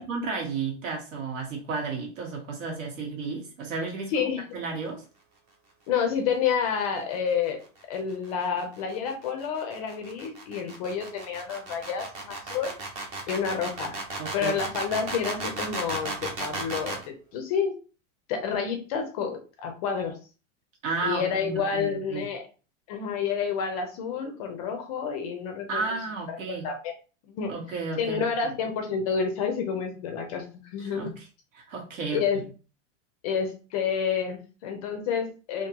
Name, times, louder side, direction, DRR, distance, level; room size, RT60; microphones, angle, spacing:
voice 1, 0.0-4.3 4.5-5.0 14.2-14.5 20.8-22.3 25.7-26.7 27.5-28.3 30.9-31.1 31.5-32.4, right 4 dB, 80° right, 0 dB, 1.9 m, -33 dB
voice 2, 4.1-4.4 5.9-7.6 7.9-12.7 13.3-13.9 14.3-17.0 17.3-17.7 18.3-20.2 21.0-22.4 22.9-25.9 26.3-26.4 26.6-26.7 27.3-27.5 28.0-31.1 32.1-32.4 33.2-35.7, left 6 dB, 30° left, 4 dB, 0.5 m, -29 dB
sound 1, 7.8-17.1, right 3 dB, 20° right, 0.5 m, -35 dB
3.7 x 2.6 x 2.8 m, 0.35 s
supercardioid pair, 170°, 39 cm